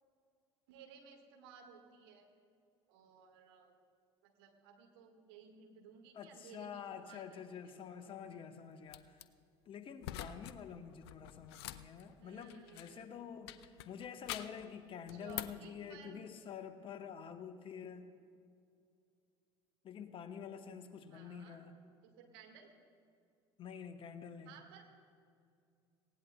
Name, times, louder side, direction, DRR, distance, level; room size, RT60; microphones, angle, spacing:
voice 1, 0.7-2.3 2.9-3.7 4.2-7.2 7.6-8.1 12.2-13.1 15.1-16.2 21.1-21.7 22.0-22.7 24.4-24.8, right 6 dB, 70° right, 3 dB, 1.6 m, -58 dB
voice 2, 6.1-9.2 9.7-18.1 19.8-21.8 23.6-24.5, left 7 dB, 40° left, 8 dB, 1.0 m, -48 dB
sound 1, 8.9-9.2 10.0-10.6 10.9-13.0 13.5-14.7 15.1-15.7, left 12 dB, 70° left, 0.5 m, -46 dB
19.0 x 17.0 x 2.2 m, 2.3 s
figure-of-eight pair, 65°, 14 cm